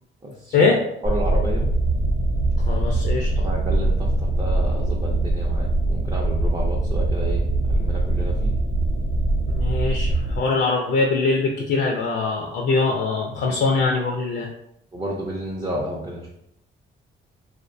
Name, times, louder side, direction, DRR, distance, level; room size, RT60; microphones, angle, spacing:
voice 1, 0.2-1.7 3.4-7.4 7.7-8.5 13.5-13.6 14.9-16.4, equal, 20° right, -3 dB, 0.4 m, -31 dB
sound 1, 1.0-10.4, right 2 dB, 80° right, 0.7 m, -22 dB
voice 2, 2.7-3.5 9.5-14.5, left 3 dB, 60° left, 0 dB, 0.4 m, -22 dB
2.5 x 2.0 x 2.5 m, 0.76 s
cardioid pair, 90°, 20 cm